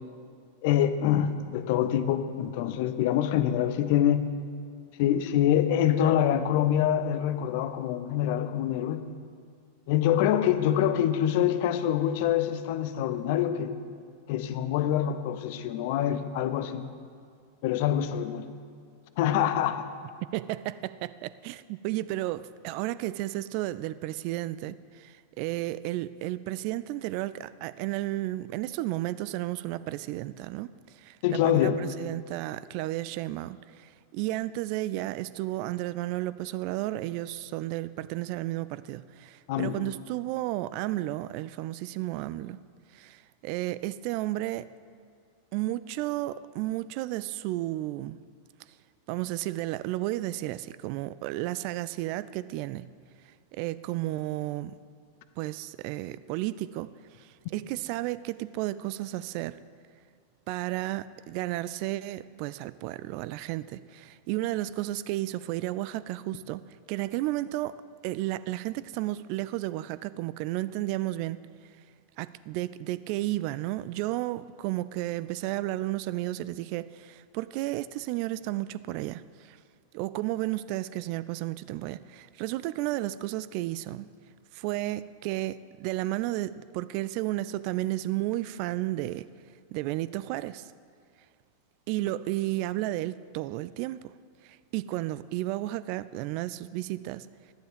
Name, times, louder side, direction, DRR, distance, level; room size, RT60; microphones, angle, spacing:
voice 1, 0.6-4.3 5.0-9.0 9.9-13.7 14.3-16.9 17.6-18.5 19.2-19.9 31.2-31.8 39.5-39.8, left 10 dB, 50° left, 11 dB, 0.8 m, -25 dB
voice 2, 20.3-42.6 42.9-44.7 45.5-48.2 49.1-52.9 53.5-54.7 55.4-56.9 57.2-59.6 60.5-67.8 68.0-71.4 72.2-79.6 79.9-84.1 84.5-89.3 89.7-90.7 91.9-94.1 94.4-97.3, right 16 dB, 45° right, 17 dB, 0.3 m, -33 dB
12.0 x 10.0 x 5.2 m, 2.3 s
figure-of-eight pair, 90°, 0 cm